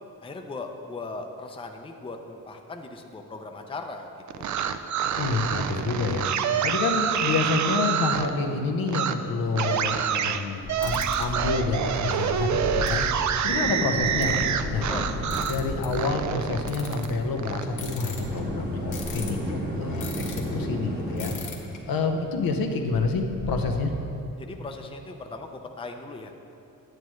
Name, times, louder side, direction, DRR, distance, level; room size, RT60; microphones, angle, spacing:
voice 1, 0.2-4.1 4.4-4.6 14.9-15.1 24.4-26.3, left 3 dB, 15° left, 4 dB, 0.5 m, -38 dB
sound 1, 4.3-8.3 8.9-9.1 9.6-15.6 15.9-17.6, right 8 dB, 55° right, 0.4 m, -27 dB
voice 2, 5.1-14.9 15.5-21.3 21.9-23.9, left 3 dB, 90° left, 4 dB, 0.8 m, -28 dB
sound 2, 10.6-20.6 21.1-21.8 22.1-22.2 22.4-23.6, left 3 dB, 60° left, 1.2 m, -37 dB
sound 3, 13.5-21.4, right 1 dB, 30° right, 1.2 m, -34 dB
9.2 x 8.8 x 3.1 m, 2.9 s
cardioid pair, 95°, 35 cm